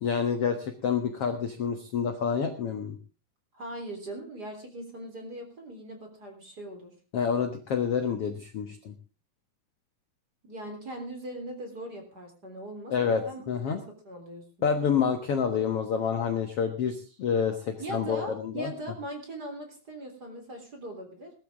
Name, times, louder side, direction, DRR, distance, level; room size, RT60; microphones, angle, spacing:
voice 1, 0.0-3.0 7.1-8.9 12.9-13.8 14.6-18.7, left 6 dB, 65° left, 7 dB, 1.5 m, -28 dB
voice 2, 3.5-6.9 10.4-14.4 17.8-21.3, right 1 dB, 25° right, 5 dB, 3.6 m, -40 dB
20.0 x 13.0 x 3.6 m, 0.34 s
omnidirectional pair, 4.7 m